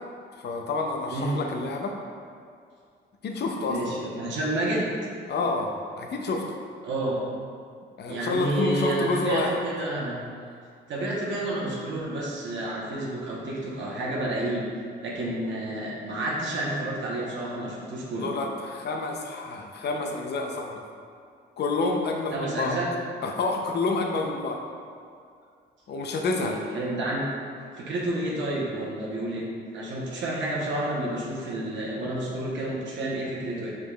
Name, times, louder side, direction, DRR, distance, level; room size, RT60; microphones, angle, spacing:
voice 1, 0.3-1.9 3.2-3.9 5.3-5.7 6.0-6.5 8.0-9.6 18.2-20.8 21.6-22.8 23.2-24.6 25.9-26.6, left 3 dB, 55° left, 2 dB, 0.6 m, -28 dB
voice 2, 3.6-4.9 6.8-7.2 8.1-10.2 10.9-14.6 15.0-18.3 22.3-22.9 26.3-27.2 27.8-29.5 29.7-33.7, right 1 dB, 70° right, -4 dB, 1.0 m, -30 dB
4.8 x 4.7 x 2.3 m, 2.3 s
cardioid pair, 90°, 20 cm